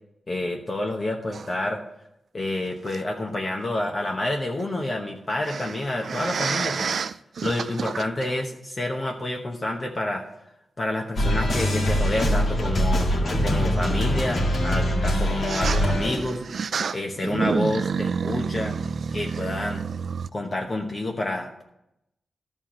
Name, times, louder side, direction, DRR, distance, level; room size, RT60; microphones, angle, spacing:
voice 1, 0.3-1.8 2.3-7.1 7.4-10.3 10.8-13.1 13.4-16.4 16.9-18.8 19.1-19.8 20.3-21.6, left 1 dB, 35° left, 1 dB, 1.0 m, -28 dB
sound 1, 1.3-1.5 2.9-3.0 5.4-8.4 9.2-9.3 12.1-12.2 15.4-20.3, right 6 dB, 70° right, 0.3 m, -29 dB
sound 2, 11.1-16.2, equal, 60° left, 1.8 m, -23 dB
13.0 x 4.4 x 7.4 m, 0.85 s
wide cardioid pair, 120°, 0 cm